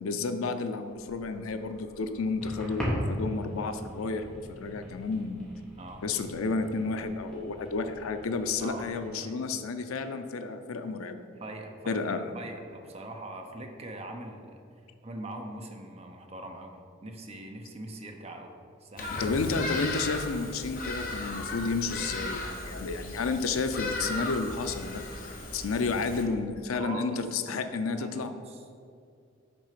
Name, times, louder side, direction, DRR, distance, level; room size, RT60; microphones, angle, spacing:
voice 1, 0.0-5.4 6.0-11.2 11.9-12.2 19.2-28.3, left 4 dB, 85° left, 9 dB, 0.5 m, -31 dB
sound 1, 0.9-9.1, equal, 5° left, 1.5 m, -39 dB
voice 2, 8.6-9.3 11.4-12.0 12.3-14.6 15.0-16.8 17.0-18.5 18.8-19.3 26.7-27.2 27.5-27.6 28.0-28.7, right 1 dB, 30° right, 3 dB, 0.6 m, -42 dB
Bird vocalization bird call bird song, 19.0-26.2, left 2 dB, 45° left, 0.9 m, -36 dB
6.0 x 3.8 x 5.8 m, 2.4 s
head